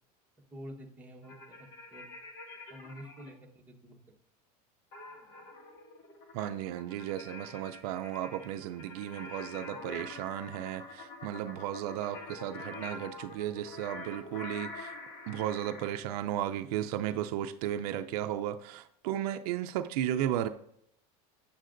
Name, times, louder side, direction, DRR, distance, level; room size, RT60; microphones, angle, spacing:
voice 1, 0.5-1.6 1.9-2.1 2.7-4.0, equal, 10° right, -2 dB, 1.2 m, -48 dB
sound 1, 1.2-3.3 4.9-16.0, left 2 dB, 50° left, 2.0 m, -46 dB
voice 2, 6.3-14.9 15.3-20.5, right 11 dB, 75° right, 9 dB, 0.5 m, -34 dB
8.6 x 7.5 x 2.5 m, 0.72 s
supercardioid pair, 135°, 20 cm